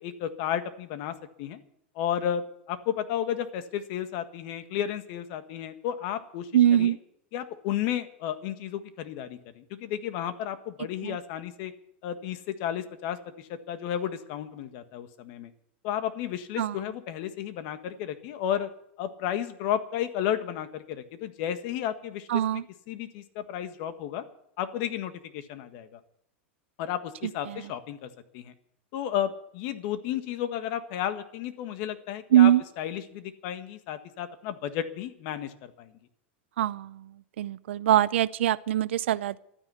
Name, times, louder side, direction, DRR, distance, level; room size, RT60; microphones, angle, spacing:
voice 1, 0.0-1.6 1.9-6.5 6.8-7.0 7.3-11.7 12.0-15.5 15.8-18.7 19.0-22.4 22.9-24.2 24.6-26.0 26.8-28.5 28.9-32.5 32.8-35.9, left 10 dB, 55° left, 9 dB, 1.6 m, -33 dB
voice 2, 6.5-7.0 11.0-11.2 16.6-16.7 22.3-22.6 27.5-27.6 32.3-32.6 36.6-37.1 37.4-39.4, right 11 dB, 80° right, 15 dB, 0.6 m, -22 dB
12.5 x 9.9 x 9.5 m, 0.72 s
supercardioid pair, 130°, 6 cm